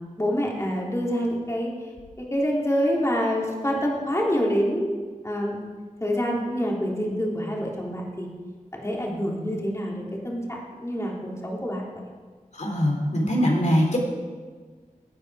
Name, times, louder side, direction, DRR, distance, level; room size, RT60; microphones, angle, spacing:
voice 1, 0.0-1.7 2.2-4.9 5.2-5.6 6.0-8.3 8.7-11.8, equal, 20° left, -3 dB, 3.5 m, -26 dB
voice 2, 12.5-14.0, equal, 60° left, -1 dB, 3.4 m, -22 dB
17.0 x 9.5 x 5.0 m, 1.5 s
wide cardioid pair, 60°, 14 cm